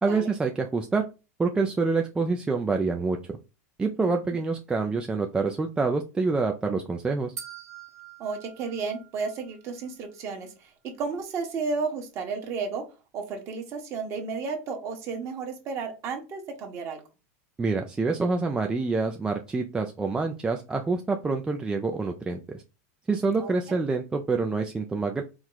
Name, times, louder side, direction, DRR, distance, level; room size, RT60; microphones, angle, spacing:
voice 1, 0.0-1.0 1.4-3.2 3.8-7.3 17.6-22.6 23.1-25.2, right 4 dB, 10° right, 3 dB, 0.3 m, -26 dB
sound 1, 7.4-9.6, right 9 dB, 90° right, 1.3 m, -44 dB
voice 2, 8.2-10.7 11.0-12.8 13.1-17.0 23.4-23.8, right 4 dB, 35° right, 3 dB, 1.2 m, -33 dB
4.5 x 2.2 x 3.9 m, 0.30 s
supercardioid pair, 140°, 8 cm